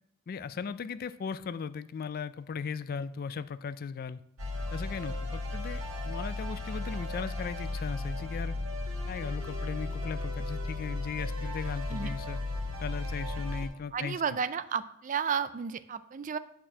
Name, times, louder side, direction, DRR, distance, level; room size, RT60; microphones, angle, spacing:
voice 1, 0.3-4.2 4.7-8.6 9.1-12.4 12.8-14.2, left 6 dB, 45° left, 15 dB, 0.3 m, -37 dB
sound 1, 4.4-13.7, left 2 dB, 75° right, 2.2 m, -35 dB
voice 2, 13.9-16.4, right 6 dB, 35° right, 14 dB, 0.4 m, -32 dB
8.9 x 4.3 x 6.1 m, 0.75 s
head